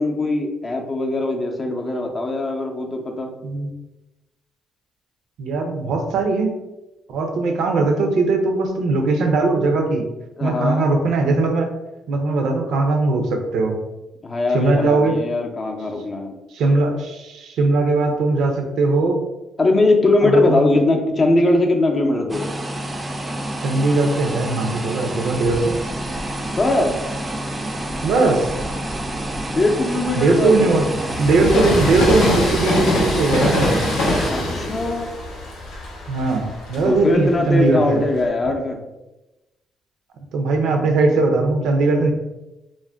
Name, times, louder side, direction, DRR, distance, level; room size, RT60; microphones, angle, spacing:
voice 1, 0.0-3.3 10.4-10.9 14.2-16.3 19.6-22.5 26.6-27.0 29.4-30.8 34.3-35.1 36.8-38.8, left 2 dB, 35° left, 2 dB, 0.5 m, -20 dB
voice 2, 5.4-6.5 7.1-10.0 10.4-11.7 12.1-13.8 14.5-15.2 16.5-19.2 20.2-20.7 23.6-25.8 28.0-28.5 30.2-30.9 31.2-33.9 36.1-38.0 40.3-42.1, right 3 dB, 80° right, 3 dB, 0.5 m, -19 dB
sound 1, 22.3-34.3, right 1 dB, 25° right, 0.4 m, -28 dB
Train, 25.4-27.0 27.7-38.3, left 1 dB, 85° left, 0.7 m, -25 dB
2.5 x 2.1 x 3.3 m, 1.0 s
cardioid pair, 90°, 0 cm